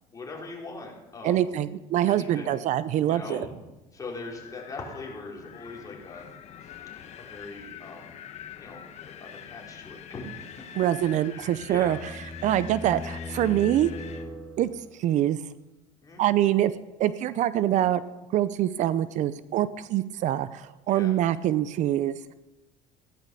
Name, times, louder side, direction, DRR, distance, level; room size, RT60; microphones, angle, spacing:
voice 1, 0.1-1.6 2.0-2.6 3.1-3.5 3.9-6.3 6.6-8.2 8.5-10.4 11.3-12.0 16.0-16.2 20.9-21.1, left 3 dB, 25° left, -1 dB, 4.0 m, -41 dB
voice 2, 1.2-3.5 10.8-12.0 12.4-13.9 14.6-14.7 15.0-15.4 16.2-16.7 17.0-18.0 18.3-22.3, right 12 dB, 55° right, 15 dB, 0.6 m, -24 dB
Wind, 4.3-14.3, left 9 dB, 50° left, 1.3 m, -45 dB
sound 1, 11.2-15.0, left 2 dB, ahead, 3.7 m, -40 dB
15.5 x 11.0 x 6.8 m, 1.0 s
cardioid pair, 120°, 14 cm